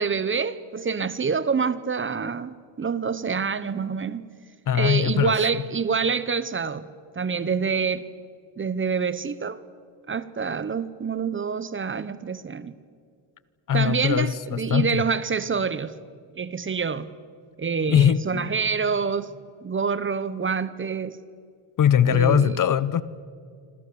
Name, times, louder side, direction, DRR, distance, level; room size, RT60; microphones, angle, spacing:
voice 1, 0.0-4.2 4.7-6.9 7.1-8.1 8.6-9.6 10.1-12.7 13.7-16.0 16.4-17.1 17.6-19.3 19.6-21.2 22.1-22.6, right 5 dB, 25° right, 0.9 m, -26 dB
voice 2, 4.7-5.4 13.7-15.1 17.9-18.5 21.8-23.0, left 9 dB, 40° left, 0.8 m, -21 dB
27.0 x 26.0 x 7.0 m
cardioid pair, 125°, 49 cm